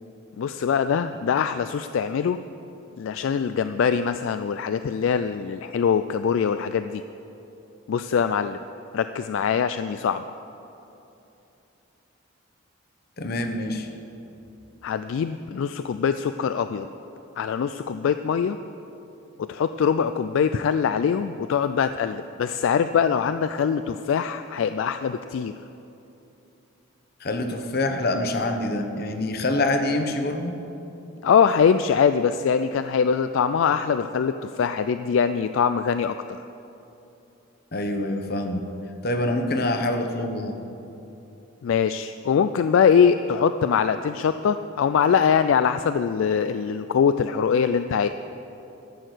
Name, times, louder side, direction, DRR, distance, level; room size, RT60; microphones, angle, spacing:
voice 1, 0.4-2.4 3.0-7.0 7.9-8.6 8.9-10.2 14.8-16.9 17.4-18.6 19.4-25.5 31.2-36.4 41.6-48.1, left 7 dB, 70° left, 10 dB, 0.3 m, -23 dB
voice 2, 13.2-13.9 27.2-30.6 37.7-38.7 39.0-40.6, left 1 dB, 45° left, 6 dB, 0.9 m, -26 dB
13.0 x 6.5 x 8.0 m, 2.9 s
head